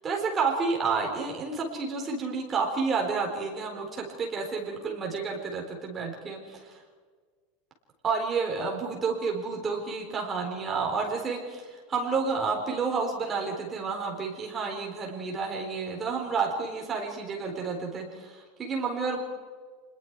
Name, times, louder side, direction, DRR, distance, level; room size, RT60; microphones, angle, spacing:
voice 1, 0.0-6.8 8.0-19.2, right 4 dB, 20° right, 0 dB, 4.0 m, -30 dB
30.0 x 21.0 x 4.7 m, 1.5 s
supercardioid pair, 160°, 0 cm